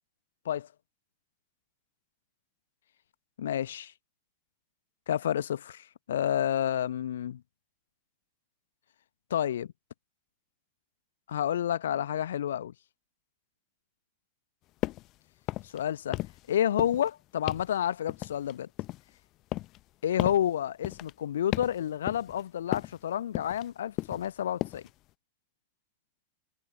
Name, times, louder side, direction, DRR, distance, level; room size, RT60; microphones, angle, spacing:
voice 1, 3.4-3.9 5.1-7.4 9.3-9.7 11.3-12.7 15.7-16.2 16.5-18.7 20.0-24.8, left 10 dB, 60° left, 1.0 m, -30 dB
sound 1, 14.8-15.1 15.4-15.8 16.1-16.5 16.8-17.1 17.5-17.7 18.1-19.1 19.5-19.8 20.2-20.5 20.8-21.1 21.5-21.8 22.1-22.4 22.7-23.0 23.3-23.7 24.0-24.3 24.6-24.9, left 18 dB, 40° left, 0.9 m, -34 dB
figure-of-eight pair, 90°, 0 cm